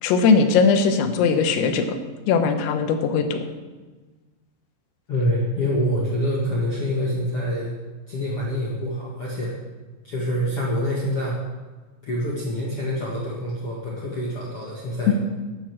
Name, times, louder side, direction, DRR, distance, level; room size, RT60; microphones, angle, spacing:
voice 1, 0.0-2.0 2.3-3.4 15.1-15.2, left 5 dB, 85° left, 6 dB, 3.8 m, -19 dB
voice 2, 5.1-7.7 8.1-9.5 10.0-11.4 12.0-15.1, equal, 65° left, -5 dB, 1.4 m, -26 dB
11.0 x 9.0 x 7.4 m, 1.3 s
omnidirectional pair, 5.8 m